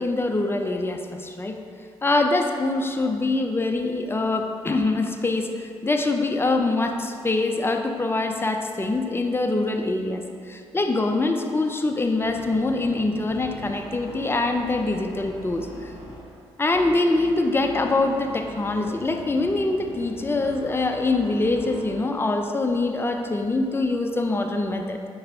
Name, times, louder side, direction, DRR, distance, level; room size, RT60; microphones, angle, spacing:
voice 1, 0.0-1.6 2.0-15.9 16.6-25.0, left 2 dB, 20° left, 4 dB, 0.6 m, -24 dB
sound 1, 12.2-16.4 16.7-22.1, equal, 70° right, 1.5 m, -41 dB
4.8 x 4.5 x 4.9 m, 2.3 s
hypercardioid pair, 45°, 12 cm